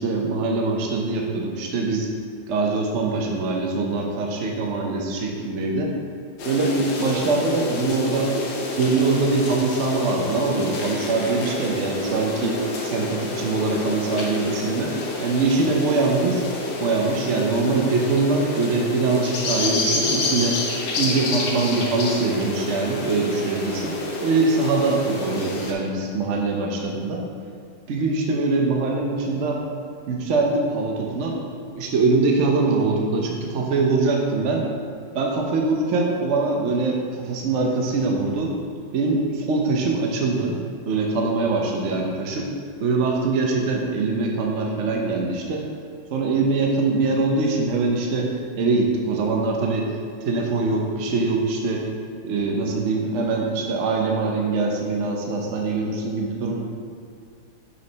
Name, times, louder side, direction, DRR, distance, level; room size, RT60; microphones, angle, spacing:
voice 1, 0.0-2.1 2.5-5.9 6.4-8.3 8.8-16.4 16.8-20.6 21.0-24.0 24.2-27.2 27.9-29.6 30.1-31.4 31.7-34.7 35.1-38.5 38.9-40.6 40.8-42.5 42.8-45.6 46.1-50.0 50.3-51.9 52.2-56.6, right 3 dB, 70° right, 0 dB, 0.6 m, -23 dB
sound 1, 6.4-25.7, left 3 dB, 65° left, 1.5 m, -29 dB
6.2 x 5.8 x 4.1 m, 2.3 s
omnidirectional pair, 2.2 m